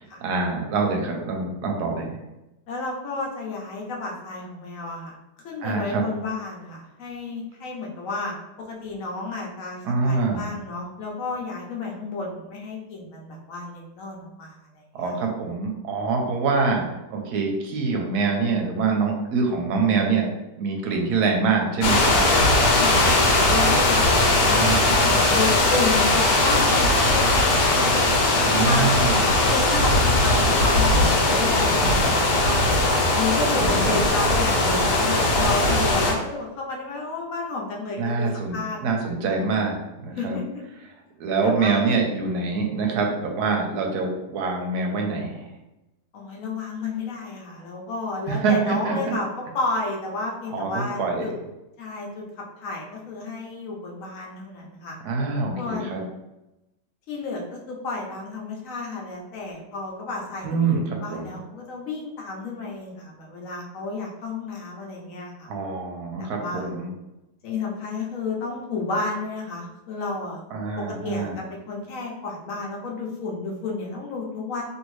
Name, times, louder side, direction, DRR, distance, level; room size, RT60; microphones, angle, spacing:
voice 1, 0.2-2.2 5.6-6.0 9.8-10.5 14.9-16.9 17.1-20.3 20.6-22.3 24.4-25.0 28.5-29.3 33.5-34.0 38.0-40.4 41.2-45.5 48.3-49.2 50.5-51.3 55.0-56.0 60.4-61.3 65.5-66.9 70.5-71.4, right 4 dB, 75° right, 1 dB, 1.1 m, -25 dB
voice 2, 2.7-5.1 5.4-15.2 22.7-24.2 24.8-28.1 28.3-29.0 29.5-38.8 40.2-40.4 41.4-41.8 46.1-49.3 49.5-51.3 51.8-52.2 52.6-55.0 55.6-56.1 57.1-65.5 66.2-66.7 67.4-70.4 70.8-74.6, left 3 dB, 60° left, -1 dB, 1.0 m, -32 dB
sound 1, 21.8-36.1, left 2 dB, 90° left, 1.4 m, -19 dB
2.8 x 2.6 x 3.0 m, 0.96 s
omnidirectional pair, 1.8 m